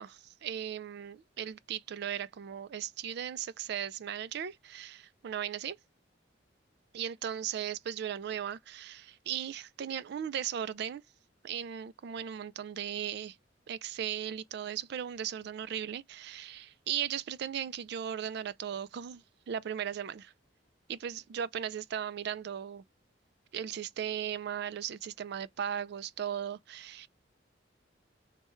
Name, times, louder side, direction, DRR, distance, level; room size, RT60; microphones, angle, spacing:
voice 1, 0.0-5.8 6.9-11.0 11.4-13.4 13.7-20.3 20.9-22.8 23.5-27.1, right 9 dB, 60° right, 0.3 m, -37 dB
3.3 x 2.2 x 4.3 m
head